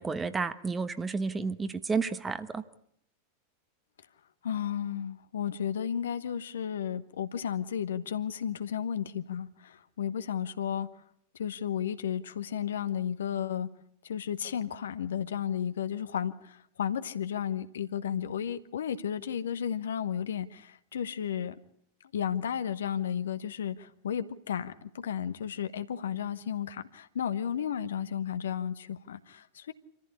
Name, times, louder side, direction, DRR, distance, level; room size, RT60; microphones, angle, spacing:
voice 1, 0.0-2.6, right 4 dB, 15° right, 1.2 m, -31 dB
voice 2, 4.4-10.9 11.3-13.7 14.0-21.5 22.1-29.7, left 9 dB, 65° left, 1.2 m, -33 dB
26.5 x 15.0 x 8.5 m
figure-of-eight pair, 90°, 0 cm